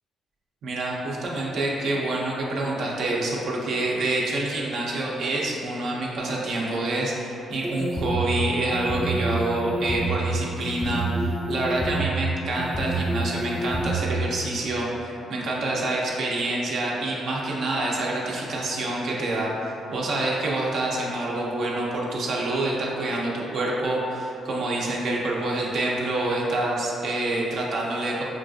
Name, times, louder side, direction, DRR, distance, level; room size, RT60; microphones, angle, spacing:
voice 1, 0.6-28.2, right 2 dB, 70° right, -4 dB, 0.6 m, -27 dB
sound 1, 7.5-8.2 8.7-10.1 10.7-12.0 12.6-13.9, right 1 dB, 10° left, 0.5 m, -28 dB
5.2 x 2.4 x 2.6 m, 2.7 s
cardioid pair, 90°, 0 cm